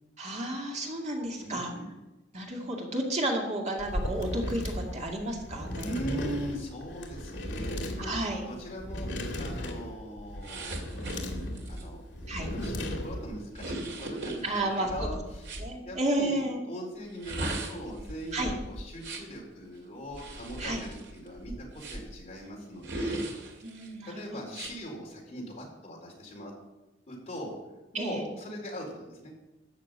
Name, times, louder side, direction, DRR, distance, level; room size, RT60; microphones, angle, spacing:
voice 1, 0.2-1.7 2.3-5.9 8.0-8.4 12.3-12.5 14.4-15.1 15.6-16.6 18.3-18.5 20.6-20.8 23.6-24.4 27.9-28.2, right 1 dB, 40° right, 0 dB, 2.2 m, -32 dB
voice 2, 1.4-1.9 5.8-8.1 8.5-9.1 9.3-12.0 12.4-16.4 16.7-23.3 24.0-26.5 27.1-27.5 27.9-29.3, equal, 35° left, -2 dB, 4.3 m, -40 dB
sound 1, 3.8-13.4, left 1 dB, 70° left, 2.6 m, -36 dB
sound 2, 10.4-15.7 17.0-19.4 20.1-22.2 22.8-23.9 24.5-24.7, right 1 dB, 65° right, 2.5 m, -38 dB
13.5 x 6.6 x 9.0 m, 1.0 s
head